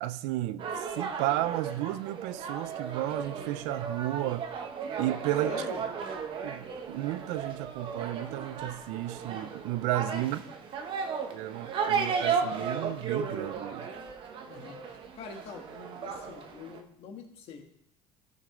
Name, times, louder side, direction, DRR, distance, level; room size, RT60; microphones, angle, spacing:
voice 1, 0.0-4.5 5.0-5.5 6.4-10.4 11.3-13.9, right 15 dB, 80° right, 0.5 m, -33 dB
orgiva market, 0.6-16.8, right 6 dB, 45° right, 1.1 m, -35 dB
voice 2, 5.4-5.8 10.0-10.5 14.5-14.8 15.1-17.6, left 6 dB, 60° left, 1.6 m, -44 dB
13.5 x 5.3 x 3.8 m
cardioid pair, 130°, 11 cm